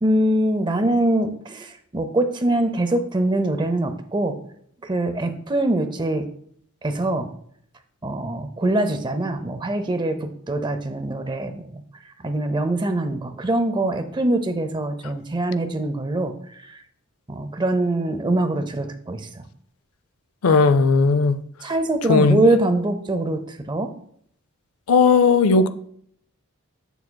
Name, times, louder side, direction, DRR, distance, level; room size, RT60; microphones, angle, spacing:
voice 1, 0.0-4.4 4.8-6.3 6.8-7.3 8.0-16.8 17.3-19.4 21.6-23.9, right 1 dB, 20° right, 0.5 m, -23 dB
voice 2, 20.4-21.4 22.1-22.4 24.9-25.7, left 4 dB, 85° left, 0.4 m, -16 dB
7.4 x 6.9 x 2.2 m
head